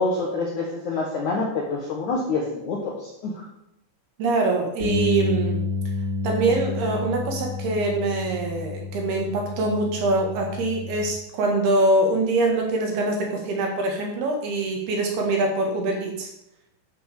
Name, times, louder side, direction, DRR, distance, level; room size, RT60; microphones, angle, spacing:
voice 1, 0.0-3.5, left 3 dB, 65° left, -1 dB, 1.9 m, -27 dB
voice 2, 4.2-5.6 6.2-16.3, right 2 dB, 60° right, 1 dB, 3.4 m, -24 dB
Bass guitar, 4.8-11.0, left 2 dB, 35° right, 2.8 m, -29 dB
12.0 x 6.1 x 6.7 m, 0.79 s
omnidirectional pair, 5.6 m